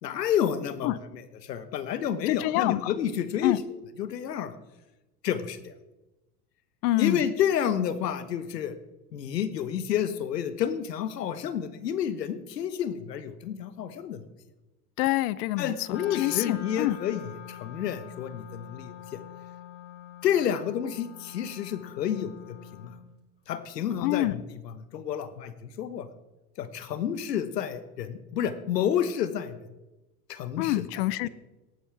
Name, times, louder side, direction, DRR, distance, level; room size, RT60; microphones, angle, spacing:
voice 1, 0.0-3.6 4.0-4.5 5.2-5.7 7.0-8.8 9.1-14.2 15.6-17.2 17.5-19.2 20.2-22.9 23.5-26.1 26.6-29.7 30.3-30.8, left 9 dB, 90° left, 12 dB, 1.2 m, -30 dB
voice 2, 2.3-2.9 3.4-3.6 6.8-7.2 15.0-17.0 24.0-24.4 30.6-31.3, left 17 dB, 65° left, 19 dB, 0.8 m, -26 dB
Wind instrument woodwind instrument, 15.9-23.0, left 9 dB, 30° left, 3.9 m, -44 dB
18.5 x 12.5 x 3.5 m, 1.0 s
hypercardioid pair, 90°, 47 cm